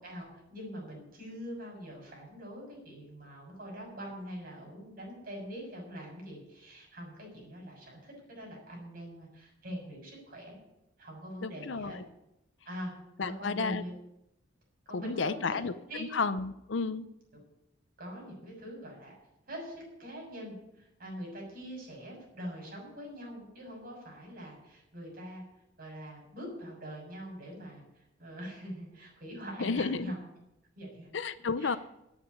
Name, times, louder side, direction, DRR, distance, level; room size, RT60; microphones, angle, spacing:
voice 1, 0.0-10.6 11.0-12.0 12.6-12.9 13.2-13.9 14.9-15.6 15.9-16.1 18.0-19.2 19.5-19.7 20.0-25.4 25.8-30.2 30.8-31.1 31.6-31.7, equal, 50° right, -1 dB, 6.7 m, -43 dB
voice 2, 11.4-12.0 13.2-13.8 14.9-15.7 16.1-17.1 29.6-30.1 31.1-31.8, left 4 dB, 70° left, 13 dB, 0.7 m, -32 dB
9.8 x 9.1 x 9.7 m, 0.87 s
head